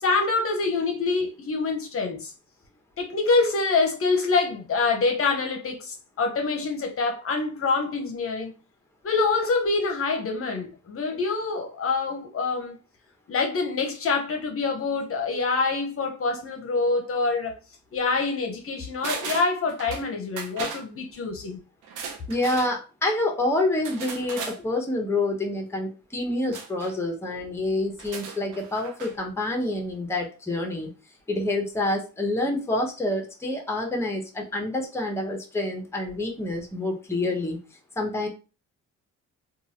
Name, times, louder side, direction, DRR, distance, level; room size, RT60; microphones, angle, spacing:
voice 1, 0.0-2.3 3.0-8.5 9.0-12.7 13.3-17.5 17.9-21.6, left 4 dB, 45° left, 0.7 m, -26 dB
sound 1, 19.0-20.1 20.4-20.8 21.8-22.7 23.8-24.6 26.5-26.9 27.9-29.1 29.4-29.5, right 5 dB, 90° right, 0.6 m, -36 dB
voice 2, 22.3-30.9 31.3-37.6 38.0-38.3, left 2 dB, 10° left, 0.8 m, -27 dB
2.9 x 2.3 x 2.8 m
cardioid pair, 90°, 30 cm